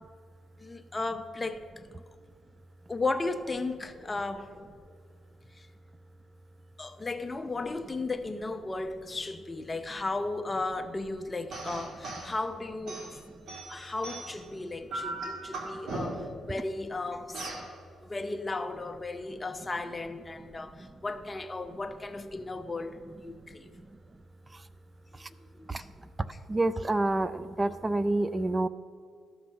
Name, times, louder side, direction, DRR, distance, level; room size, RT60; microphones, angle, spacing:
voice 1, 0.6-1.6 2.9-5.0 5.5-5.7 6.8-13.1 13.7-17.4 18.0-23.7 25.3-25.9, left 3 dB, 20° left, 0.8 m, -35 dB
sound 1, 11.5-12.3 12.9-14.5 14.9-16.4 17.3-17.7, right 2 dB, 70° right, 2.3 m, -37 dB
voice 2, 26.5-28.7, right 2 dB, 20° right, 0.4 m, -27 dB
13.0 x 6.1 x 6.4 m
cardioid pair, 90°, 0 cm